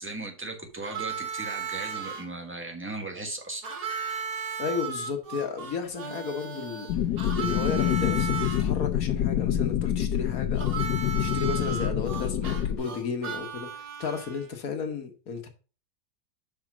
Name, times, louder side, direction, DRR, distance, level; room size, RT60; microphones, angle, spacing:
voice 1, 0.0-3.6, right 2 dB, 10° right, 1.1 m, -37 dB
Harmonica, 0.8-2.2 3.6-8.6 10.6-14.5, right 6 dB, 70° right, 1.9 m, -35 dB
voice 2, 4.6-6.9 7.3-15.5, left 5 dB, 60° left, 1.6 m, -33 dB
sound 1, 6.9-12.8, left 11 dB, 75° left, 1.3 m, -26 dB
5.9 x 5.0 x 6.0 m
omnidirectional pair, 1.8 m